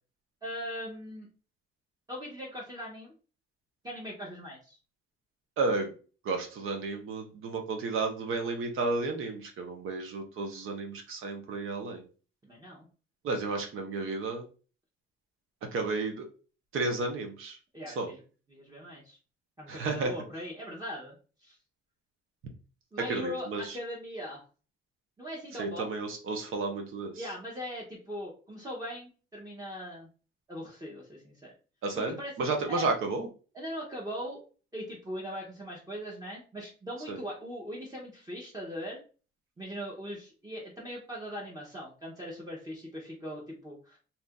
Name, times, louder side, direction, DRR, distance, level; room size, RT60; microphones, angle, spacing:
voice 1, 0.4-1.3 2.1-3.1 3.8-4.8 12.4-12.9 17.7-18.2 18.5-19.2 19.6-21.2 21.4-21.6 22.9-24.4 25.2-25.9 27.2-30.1 30.5-31.5 32.0-32.3 32.7-32.9 33.5-34.4 34.7-39.0 39.6-44.0, equal, 15° right, -4 dB, 0.9 m, -40 dB
voice 2, 5.6-5.9 6.2-12.0 13.2-14.4 15.7-16.3 16.7-17.6 18.0-18.1 19.7-20.1 23.1-23.6 25.6-27.1 31.8-33.3 37.1-37.2, right 3 dB, 75° right, 4 dB, 0.9 m, -32 dB
2.9 x 2.5 x 3.5 m, 0.36 s
cardioid pair, 105°, 21 cm